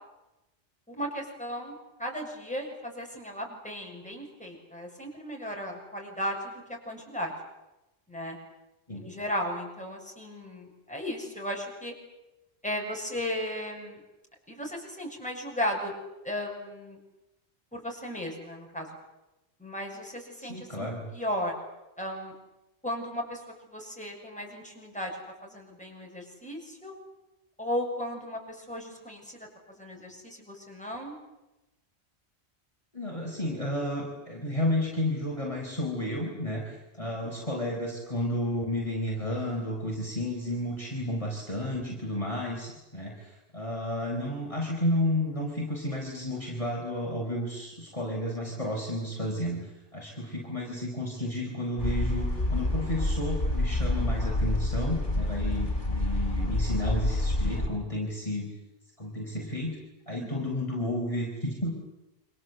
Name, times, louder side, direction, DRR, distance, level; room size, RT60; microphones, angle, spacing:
voice 1, 0.9-7.3 8.1-8.4 9.0-11.9 12.6-14.0 14.5-15.9 16.2-17.0 17.7-18.9 19.6-20.9 21.1-21.5 22.0-22.3 22.8-23.4 23.7-25.1 25.4-26.9 27.6-31.2 37.0-37.2 60.2-60.3, equal, 5° left, 0 dB, 7.3 m, -35 dB
voice 2, 20.5-21.0 32.9-49.6 49.9-58.5 59.0-59.8 60.1-61.7, left 1 dB, 30° left, -2 dB, 4.8 m, -32 dB
sound 1, 51.8-57.7, left 2 dB, 45° left, 4.2 m, -28 dB
29.0 x 25.5 x 8.0 m, 0.97 s
omnidirectional pair, 1.1 m